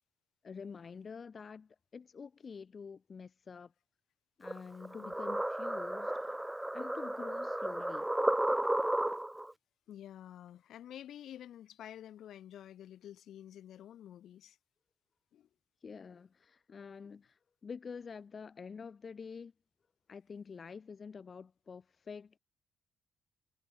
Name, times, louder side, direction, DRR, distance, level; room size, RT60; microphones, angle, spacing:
voice 1, 0.4-3.7 4.4-6.5 6.7-8.1 15.8-19.5 20.1-22.4, left 5 dB, 40° left, 1.3 m, -47 dB
sound 1, 4.4-9.5, right 1 dB, 10° right, 0.3 m, -33 dB
voice 2, 9.9-14.6 15.3-15.5 17.0-17.1, left 11 dB, 70° left, 2.2 m, -50 dB
cardioid pair, 90°, 0 cm